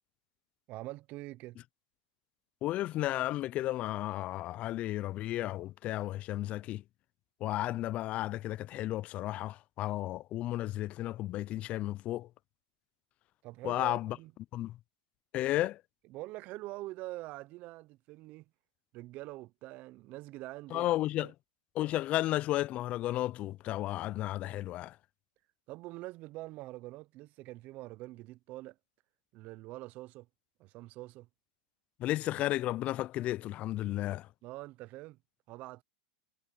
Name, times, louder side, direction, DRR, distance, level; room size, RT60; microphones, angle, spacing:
voice 1, 0.7-1.6 13.4-14.3 15.5-15.7 16.1-18.5 18.9-20.9 21.2-21.3 25.7-28.8 29.3-30.3 30.6-31.3 34.4-35.2 35.5-35.8, right 19 dB, 45° right, 0.7 m, -45 dB
voice 2, 2.6-6.8 7.4-12.3 13.6-14.2 14.5-14.8 15.3-15.8 20.7-21.3 21.8-25.0 32.0-34.3, left 15 dB, 35° left, 0.4 m, -33 dB
hypercardioid pair, 120°, 4 cm